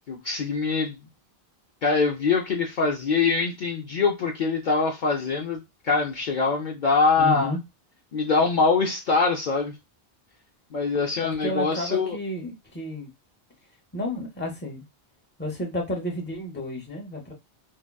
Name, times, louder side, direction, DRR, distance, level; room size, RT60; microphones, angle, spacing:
voice 1, 0.1-1.0 1.8-7.5 8.1-9.8 10.7-12.2, left 4 dB, 60° left, 0.6 m, -23 dB
voice 2, 7.2-7.6 11.2-13.1 13.9-14.8 15.4-17.3, left 1 dB, 10° left, 0.7 m, -31 dB
3.6 x 2.0 x 2.2 m
omnidirectional pair, 1.0 m